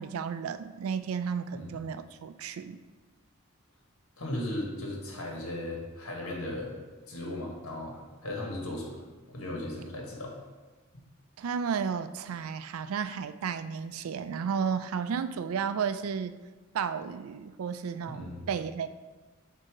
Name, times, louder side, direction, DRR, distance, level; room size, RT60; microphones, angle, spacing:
voice 1, 0.0-2.8 11.4-16.4 16.7-18.9, right 6 dB, 85° right, 12 dB, 0.4 m, -33 dB
voice 2, 4.2-6.7 7.1-9.0 9.3-10.3 18.1-18.4, left 1 dB, 85° left, -1 dB, 1.4 m, -36 dB
7.7 x 2.7 x 5.0 m, 1.3 s
head